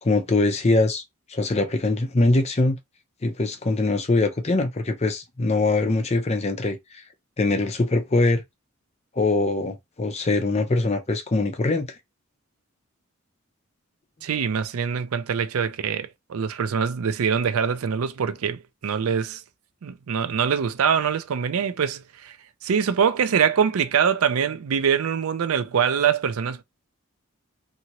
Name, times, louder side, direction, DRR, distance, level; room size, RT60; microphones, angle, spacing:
voice 1, 0.0-1.0 1.3-2.8 3.2-7.0 7.4-8.4 9.1-11.9, left 2 dB, 30° left, 0.5 m, -22 dB
voice 2, 14.2-19.4 19.8-22.4 22.6-26.6, right 7 dB, 80° right, 0.4 m, -24 dB
2.8 x 2.7 x 2.9 m
head